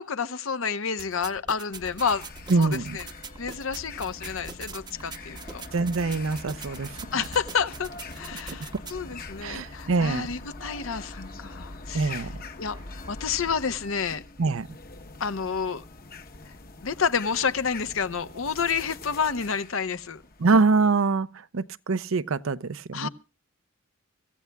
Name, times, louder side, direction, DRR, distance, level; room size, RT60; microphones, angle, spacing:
voice 1, 0.0-2.2 2.6-3.1 3.4-5.6 7.1-7.9 8.1-12.3 12.6-14.2 15.2-15.8 16.4-16.5 16.8-20.2 22.9-23.1, left 6 dB, 75° left, 0.8 m, -29 dB
sound 1, 1.0-9.0, right 4 dB, 20° right, 0.8 m, -43 dB
sound 2, 1.7-20.5, left 3 dB, 45° left, 1.0 m, -43 dB
voice 2, 2.5-3.0 5.7-6.9 9.4-10.3 11.9-12.3 14.4-14.7 20.4-21.3 21.5-23.1, right 4 dB, 75° right, 0.6 m, -24 dB
25.0 x 14.5 x 2.3 m
head